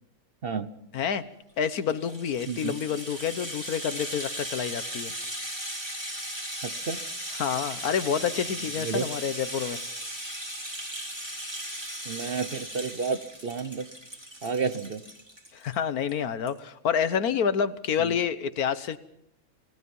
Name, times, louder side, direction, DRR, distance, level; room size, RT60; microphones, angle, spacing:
voice 1, 0.9-1.2 1.6-5.1 7.4-9.8 15.5-19.0, left 7 dB, 90° left, 13 dB, 1.6 m, -28 dB
Rattle (instrument), 1.6-15.8 16.1-16.2 16.5-16.6, right 1 dB, 15° right, 3.4 m, -37 dB
voice 2, 2.5-2.8 6.6-7.0 8.8-9.1 12.1-13.9 14.4-15.0 18.0-18.1, right 5 dB, 45° right, 11 dB, 1.0 m, -31 dB
28.5 x 18.5 x 5.5 m, 0.74 s
omnidirectional pair, 1.5 m